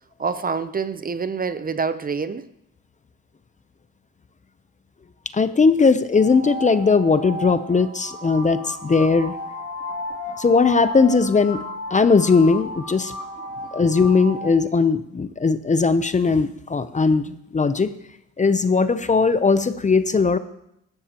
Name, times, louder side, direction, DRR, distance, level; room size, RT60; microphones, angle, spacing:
voice 1, 0.2-2.5, right 5 dB, 30° right, 13 dB, 0.7 m, -26 dB
voice 2, 5.3-9.3 10.4-11.6 11.9-13.1 13.7-17.9 18.4-20.4, left 4 dB, 25° left, 12 dB, 0.7 m, -19 dB
sound 1, 6.1-14.5, left 1 dB, 50° left, 3.1 m, -34 dB
16.5 x 12.5 x 3.0 m, 0.77 s
cardioid pair, 90°, 30 cm